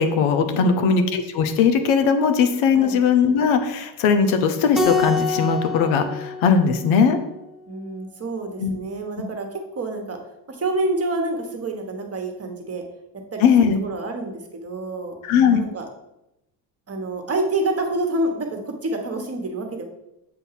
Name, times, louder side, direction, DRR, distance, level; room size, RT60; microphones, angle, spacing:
voice 1, 0.0-7.2 8.6-8.8 13.4-13.8 15.2-15.6, left 6 dB, 80° left, 8 dB, 0.9 m, -19 dB
voice 2, 0.5-1.0 2.8-3.0 7.7-10.2 10.5-12.8 13.3-15.2 15.5-15.8 16.9-19.8, right 2 dB, 30° right, 3 dB, 1.3 m, -28 dB
Keyboard (musical), 4.7-7.4, left 4 dB, ahead, 0.6 m, -26 dB
7.8 x 2.7 x 5.7 m, 0.90 s
supercardioid pair, 85°, 47 cm